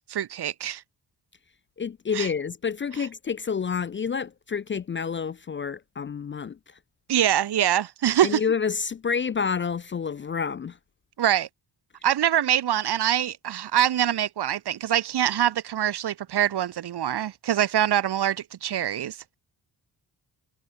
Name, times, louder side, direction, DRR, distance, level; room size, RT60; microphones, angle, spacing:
voice 1, 0.1-0.8 2.1-2.3 7.1-8.4 11.2-11.5 12.0-19.2, right 11 dB, 70° right, 1.1 m, -24 dB
voice 2, 1.8-6.6 8.2-10.8, left 6 dB, 30° left, 0.4 m, -29 dB
cardioid pair, 95°, 41 cm